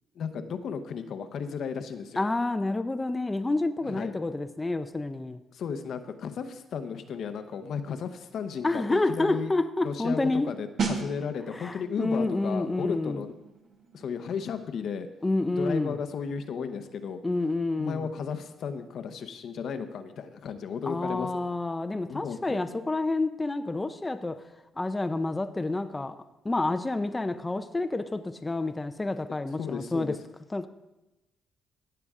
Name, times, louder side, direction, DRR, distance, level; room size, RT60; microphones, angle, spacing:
voice 1, 0.2-2.2 3.8-4.1 5.5-9.5 9.8-13.3 13.9-15.1 15.5-17.2 17.8-21.4 22.1-22.8 29.6-30.2, left 6 dB, 65° left, 9 dB, 0.8 m, -34 dB
voice 2, 2.2-5.4 8.6-10.5 11.5-13.2 15.2-16.0 17.2-18.1 20.8-24.4 24.8-26.2 26.4-30.1 30.5-30.7, left 2 dB, 20° left, 9 dB, 0.5 m, -29 dB
sound 1, 10.8-21.3 21.6-21.8, right 5 dB, 60° right, 1.9 m, -40 dB
17.0 x 6.8 x 3.7 m, 0.98 s
cardioid pair, 90°, 0 cm